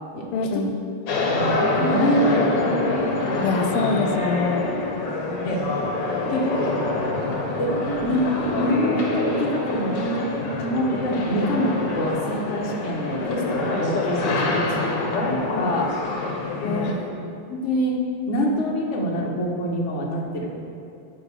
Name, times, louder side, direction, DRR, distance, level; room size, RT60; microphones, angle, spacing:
voice 1, 0.3-0.7 3.4-4.8 16.6-17.0, left 4 dB, 85° left, 6 dB, 1.5 m, -25 dB
sound 1, 1.1-16.9, left 2 dB, 60° left, 1.7 m, -26 dB
voice 2, 1.1-2.9 3.3-3.7 5.4-5.6 6.3-6.7 7.6-7.7 8.0-10.3 10.6-15.9 16.6-16.9 17.5-18.0 18.3-20.5, equal, 40° left, -2 dB, 1.2 m, -25 dB
10.5 x 3.9 x 7.6 m, 2.5 s
omnidirectional pair, 2.4 m